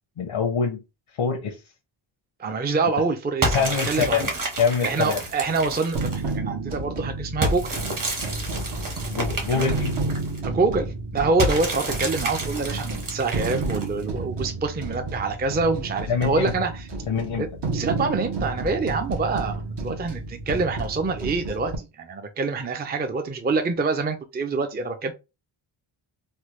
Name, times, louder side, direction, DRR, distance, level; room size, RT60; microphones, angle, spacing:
voice 1, 0.2-0.8 1.1-1.6 3.5-5.2 9.1-9.9 16.1-16.5 17.1-17.5, left 6 dB, 80° left, 0.8 m, -25 dB
voice 2, 2.4-4.3 4.8-7.8 9.5-9.7 10.4-16.9 17.4-25.1, right 3 dB, 20° right, 0.4 m, -26 dB
sound 1, 3.4-6.3 7.4-10.4 11.4-14.0, right 1 dB, 45° right, 1.2 m, -29 dB
sound 2, 5.9-21.8, right 3 dB, 60° right, 0.9 m, -31 dB
3.2 x 2.2 x 3.1 m
wide cardioid pair, 100°, 47 cm